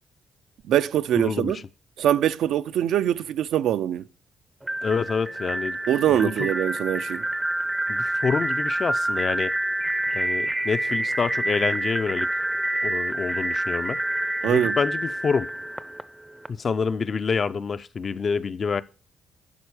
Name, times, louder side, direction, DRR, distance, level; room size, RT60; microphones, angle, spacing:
voice 1, 0.6-1.6 2.0-4.0 5.9-7.2 14.4-14.8, right 11 dB, 85° right, 0.4 m, -23 dB
voice 2, 1.2-1.5 4.8-5.8 6.1-6.5 7.9-9.5 10.1-12.3 12.8-14.0 14.4-15.5 16.5-18.8, left 5 dB, 45° left, 0.4 m, -27 dB
sound 1, 4.6-16.5, right 1 dB, 10° right, 0.5 m, -27 dB
11.5 x 4.4 x 4.8 m
cardioid pair, 95°, 0 cm